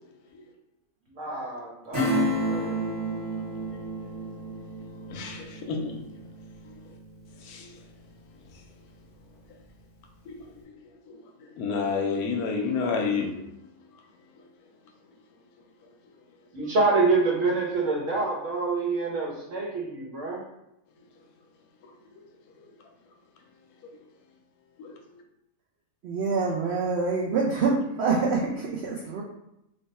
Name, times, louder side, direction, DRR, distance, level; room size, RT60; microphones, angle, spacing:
voice 1, 1.1-2.8 16.5-20.4, right 3 dB, 55° right, -3 dB, 1.2 m, -27 dB
Acoustic guitar / Strum, 1.9-8.1 8.5-8.6, equal, 15° right, 0.7 m, -31 dB
voice 2, 5.1-6.0 6.6-6.7 7.4-7.8 10.3-10.4 11.1-13.4 23.8-23.9 24.8-25.0, left 5 dB, 75° left, 3 dB, 1.0 m, -30 dB
voice 3, 26.0-29.2, right 4 dB, 85° right, -2 dB, 0.5 m, -26 dB
3.3 x 2.2 x 4.0 m, 0.84 s
omnidirectional pair, 1.7 m